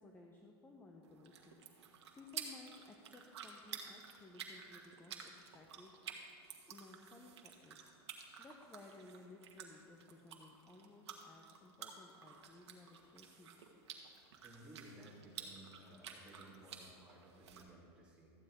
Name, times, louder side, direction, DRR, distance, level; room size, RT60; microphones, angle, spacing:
voice 1, 0.0-1.6 1.9-6.1 6.7-7.8 8.4-13.6, left 3 dB, 15° left, 1 dB, 0.8 m, -58 dB
sound 1, 1.0-17.6, right 7 dB, 85° right, 1.4 m, -52 dB
voice 2, 14.4-18.3, right 1 dB, 10° right, -6 dB, 3.1 m, -58 dB
13.5 x 9.5 x 3.7 m, 2.4 s
supercardioid pair, 125°, 14 cm